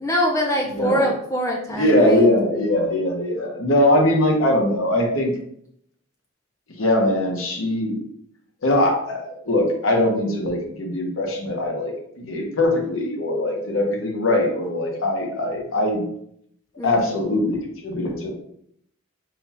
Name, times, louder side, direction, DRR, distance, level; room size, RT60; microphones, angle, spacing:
voice 1, 0.0-2.3 16.8-17.1, equal, 15° left, 0 dB, 0.4 m, -24 dB
voice 2, 0.7-1.1 1.8-5.3 6.8-8.0 8.6-16.1 16.8-18.3, left 1 dB, 80° left, 1 dB, 0.9 m, -21 dB
3.8 x 2.3 x 4.1 m, 0.69 s
head